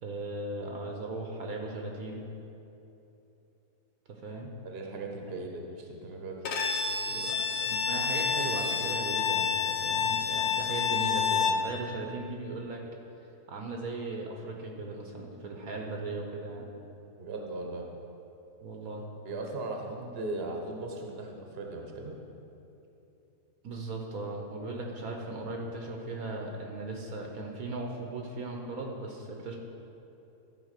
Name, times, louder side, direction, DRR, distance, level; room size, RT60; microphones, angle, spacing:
voice 1, 0.0-2.3 4.1-4.5 7.0-12.8 13.5-16.7 18.6-19.1 23.6-29.6, right 2 dB, 65° right, 1 dB, 1.4 m, -37 dB
voice 2, 4.6-6.4 17.2-17.8 19.2-22.2, right 2 dB, 40° right, 1 dB, 1.2 m, -38 dB
Bowed string instrument, 6.5-11.7, left 6 dB, 60° left, 1.2 m, -29 dB
13.0 x 4.9 x 6.6 m, 3.0 s
omnidirectional pair, 1.7 m